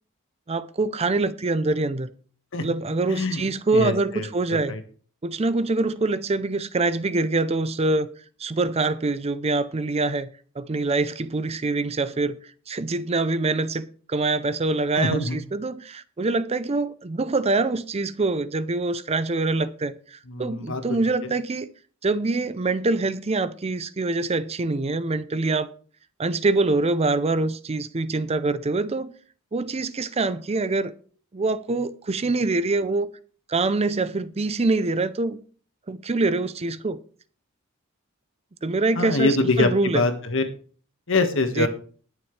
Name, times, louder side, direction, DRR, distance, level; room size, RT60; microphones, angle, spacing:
voice 1, 0.5-2.1 2.6-4.8 5.2-8.1 8.4-10.3 10.6-12.4 12.7-21.7 22.0-25.7 26.2-29.1 29.5-30.9 31.3-33.1 33.5-35.4 35.9-37.0 38.6-40.1 41.6-41.7, right 3 dB, 30° right, 0.5 m, -24 dB
voice 2, 3.1-3.4 3.7-4.8 14.9-15.4 20.3-20.8 21.2-21.3 38.9-40.4 41.1-41.7, left 3 dB, 65° left, 1.6 m, -24 dB
20.0 x 7.1 x 3.2 m
head